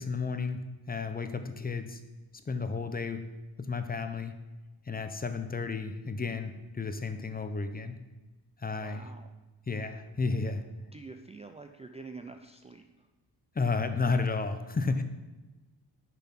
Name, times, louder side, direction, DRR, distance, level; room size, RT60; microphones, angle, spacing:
voice 1, 0.0-2.0 2.5-3.2 3.6-4.3 4.9-8.0 8.6-9.1 9.7-10.6 13.5-15.0, left 4 dB, 20° left, 8 dB, 0.7 m, -32 dB
voice 2, 8.7-9.3 10.9-13.1, right 3 dB, 15° right, 6 dB, 0.4 m, -47 dB
6.9 x 5.9 x 5.9 m, 1.1 s
cardioid pair, 110°, 41 cm